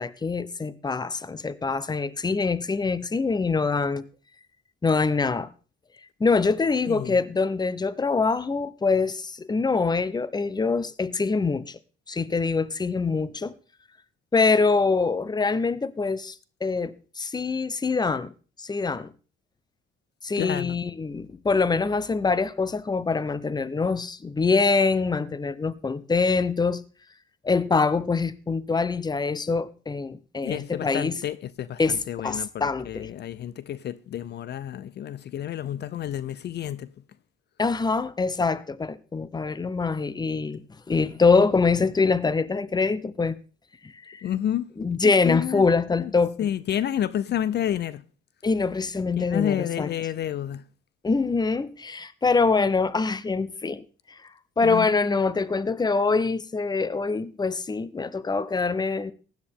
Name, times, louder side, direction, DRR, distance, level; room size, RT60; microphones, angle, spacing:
voice 1, 0.0-4.0 4.8-5.5 6.2-11.8 12.1-13.5 14.3-16.3 16.6-18.3 18.6-19.1 20.2-26.8 27.4-31.2 31.8-33.1 37.6-40.6 40.9-43.4 43.8-44.2 44.8-46.3 48.4-49.9 51.0-53.8 54.6-59.1, left 4 dB, 20° left, 0.8 m, -24 dB
voice 2, 20.4-20.8 30.4-36.9 44.2-44.7 45.0-45.7 46.0-46.1 46.4-48.0 49.2-50.6 54.6-54.9, left 10 dB, 55° left, 0.6 m, -30 dB
15.5 x 10.5 x 3.6 m
cardioid pair, 90°, 20 cm